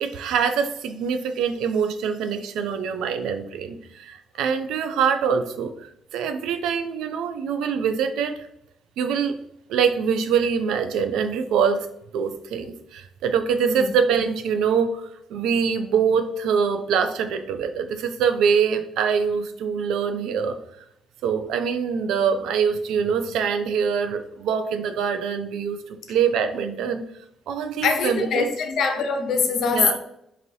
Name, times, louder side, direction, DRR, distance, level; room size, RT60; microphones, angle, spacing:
voice 1, 0.0-8.4 9.0-9.3 9.7-11.9 12.1-20.6 21.2-27.0 27.5-28.5 29.7-30.0, right 6 dB, 80° right, 0.3 m, -24 dB
voice 2, 27.8-30.0, left 5 dB, 70° left, 0.5 m, -23 dB
2.7 x 2.6 x 3.0 m
supercardioid pair, 65°, 0 cm